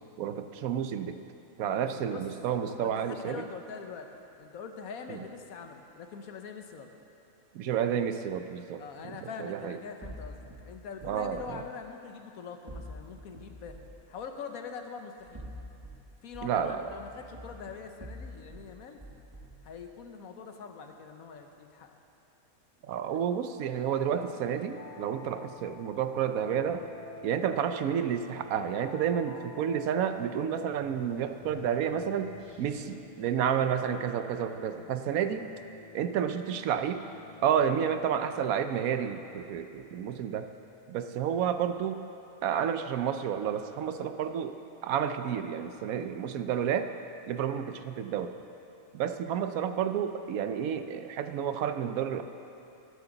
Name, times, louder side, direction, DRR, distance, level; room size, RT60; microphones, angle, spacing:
voice 1, 0.2-1.2 1.6-3.4 5.1-5.2 7.5-9.8 11.0-11.6 16.4-16.9 22.9-26.8 27.2-32.3 32.6-35.5 35.9-37.0 37.4-40.5 40.9-42.0 42.4-46.9 47.3-48.4 48.9-52.2, right 8 dB, 80° right, 9 dB, 1.1 m, -30 dB
voice 2, 2.7-6.9 8.8-13.8 14.1-15.5 16.2-19.0 19.6-22.0 23.1-23.2, left 5 dB, 75° left, 5 dB, 1.3 m, -43 dB
sound 1, 10.0-11.5 12.7-14.0 15.2-16.0 16.3-18.7 19.0-19.7, equal, 15° right, 1.4 m, -46 dB
sound 2, 23.8-39.5, left 3 dB, 40° left, 0.5 m, -50 dB
sound 3, 30.8-33.1, left 4 dB, 15° left, 2.8 m, -53 dB
13.0 x 13.0 x 3.9 m, 2.7 s
omnidirectional pair, 1.5 m